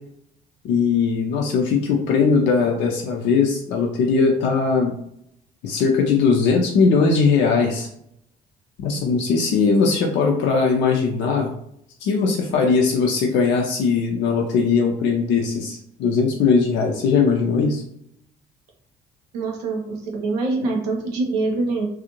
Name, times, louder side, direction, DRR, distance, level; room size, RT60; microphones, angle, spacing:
voice 1, 0.6-4.9 5.6-7.9 8.8-11.5 12.0-17.8, left 5 dB, 65° left, 0 dB, 0.5 m, -19 dB
voice 2, 19.3-21.9, right 3 dB, 85° right, 0 dB, 0.7 m, -24 dB
2.5 x 2.0 x 2.8 m, 0.71 s
hypercardioid pair, 55°, 20 cm